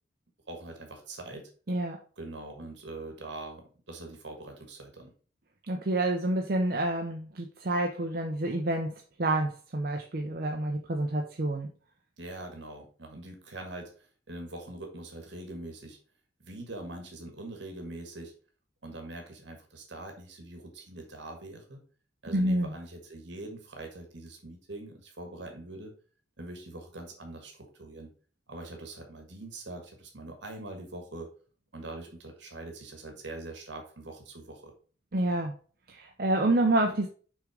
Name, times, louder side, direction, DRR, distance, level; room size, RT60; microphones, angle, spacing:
voice 1, 0.5-1.5 2.2-5.1 12.2-16.0 16.4-18.3 18.8-21.8 22.2-25.9 26.4-28.1 28.5-31.3 31.7-34.7, right 2 dB, 70° right, 4 dB, 1.5 m, -43 dB
voice 2, 5.7-11.7 22.3-22.7 35.1-35.5 35.9-37.1, right 1 dB, 50° right, 3 dB, 0.6 m, -28 dB
6.3 x 3.7 x 4.9 m, 0.41 s
head